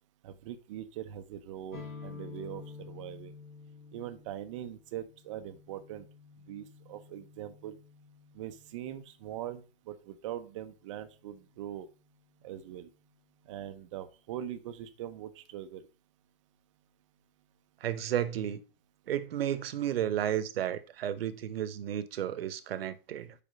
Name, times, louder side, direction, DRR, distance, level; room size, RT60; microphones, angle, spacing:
voice 1, 0.2-3.3 3.9-6.1 6.5-7.8 8.3-11.9 12.4-12.9 13.4-15.9, right 11 dB, 35° right, 0.6 m, -42 dB
sound 1, 1.7-9.3, left 5 dB, 50° left, 2.2 m, -50 dB
voice 2, 17.8-18.6 19.1-23.3, right 10 dB, 80° right, 0.9 m, -32 dB
5.1 x 5.0 x 5.2 m
supercardioid pair, 165°, 29 cm